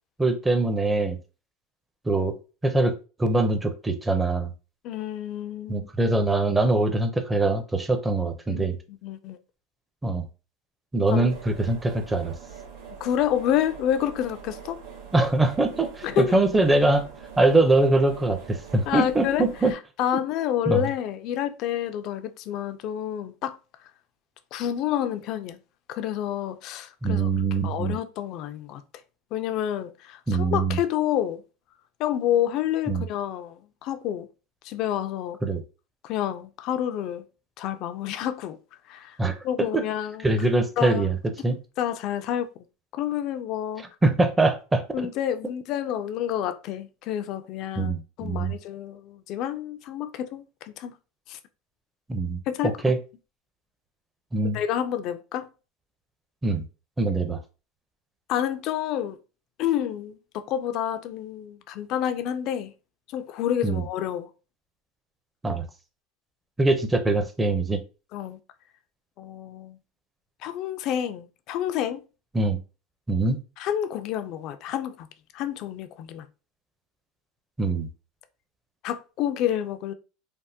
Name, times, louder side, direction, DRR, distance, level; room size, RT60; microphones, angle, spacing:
voice 1, 0.2-1.2 2.1-2.4 2.6-2.9 3.2-4.5 5.7-8.8 10.0-10.2 10.9-12.3 15.1-17.1 17.4-19.7 20.7-20.9 27.0-27.9 30.3-30.8 32.9-33.0 35.4-35.6 39.2-39.3 39.7-39.8 40.2-41.2 41.4-41.6 44.0-45.1 47.8-48.5 52.1-53.0 54.3-54.6 56.4-56.7 57.0-57.4 63.6-63.8 65.4-65.7 66.6-67.8 72.3-72.6 73.1-73.4 77.6-77.9, right 2 dB, 10° right, 0.6 m, -23 dB
voice 2, 4.8-5.9 8.5-9.4 11.1-11.3 13.0-14.8 16.0-16.3 18.9-23.6 24.5-25.6 25.9-27.3 27.6-28.8 29.3-31.4 32.0-34.3 34.6-35.4 36.0-37.2 37.6-38.6 38.9-39.2 39.4-40.3 40.8-41.1 41.8-42.5 42.9-43.8 44.9-50.9 51.3-51.4 52.5-52.8 54.5-55.5 58.3-59.2 59.6-62.7 63.1-64.3 68.1-68.4 69.2-69.8 70.4-72.0 73.6-75.1 75.3-76.3 78.8-79.9, left 10 dB, 55° left, 0.4 m, -29 dB
sound 1, 11.3-19.7, right 7 dB, 60° right, 1.5 m, -43 dB
3.4 x 2.1 x 2.7 m
supercardioid pair, 115°, 0 cm